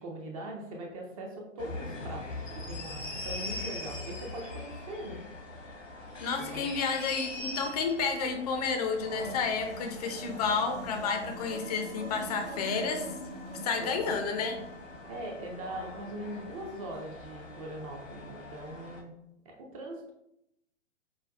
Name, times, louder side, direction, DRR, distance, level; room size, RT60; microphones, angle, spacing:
voice 1, 0.0-2.3 2.5-5.2 6.4-6.7 13.8-14.3 15.1-19.1 19.5-20.1, right 1 dB, 30° right, 0 dB, 0.5 m, -41 dB
sound 1, 1.6-19.0, left 2 dB, 80° left, 1.1 m, -43 dB
voice 2, 6.2-13.1 13.6-14.6, left 5 dB, 35° left, 4 dB, 0.5 m, -31 dB
sound 2, 9.0-15.3, equal, 65° right, 1.1 m, -44 dB
5.0 x 2.2 x 2.4 m, 0.82 s
figure-of-eight pair, 115°, 38 cm